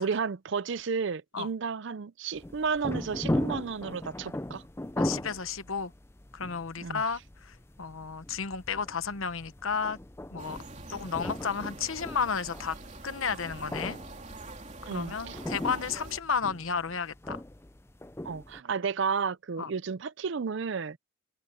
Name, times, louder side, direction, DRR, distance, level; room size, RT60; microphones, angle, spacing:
voice 1, 0.0-4.6 6.8-7.0 14.9-15.4 18.2-21.0, right 5 dB, 60° right, 0.5 m, -32 dB
sound 1, 2.4-18.6, left 1 dB, 10° left, 0.5 m, -38 dB
voice 2, 5.0-5.9 6.3-10.0 10.3-10.6 10.9-12.8 13.0-14.0 14.9-17.4 19.6-19.7, left 6 dB, 75° left, 1.1 m, -32 dB
sound 2, 10.4-16.2, right 2 dB, 35° right, 3.4 m, -45 dB
head